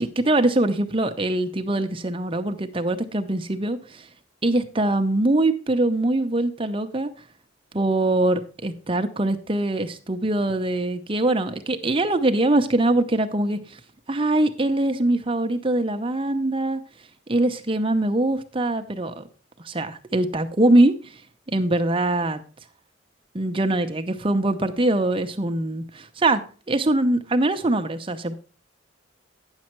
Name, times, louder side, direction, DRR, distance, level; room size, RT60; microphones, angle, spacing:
voice 1, 0.0-4.1 4.4-7.1 7.7-13.8 14.1-16.8 17.3-19.2 19.6-21.1 21.5-22.4 23.3-28.3, right 2 dB, 25° right, 7 dB, 0.7 m, -23 dB
9.7 x 6.4 x 4.5 m, 0.37 s
head